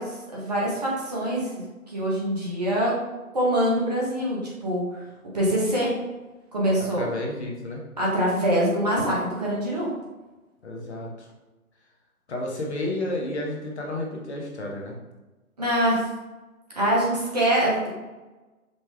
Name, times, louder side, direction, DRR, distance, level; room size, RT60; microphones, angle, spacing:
voice 1, 0.0-2.9 3.3-4.8 5.3-5.9 6.5-7.1 8.0-9.9 15.6-16.1 16.8-17.9, right 1 dB, 30° right, -5 dB, 0.8 m, -24 dB
voice 2, 6.8-7.8 10.6-11.3 12.3-14.9, left 1 dB, 50° left, -1 dB, 1.0 m, -31 dB
5.3 x 2.3 x 3.2 m, 1.2 s
figure-of-eight pair, 140°, 44 cm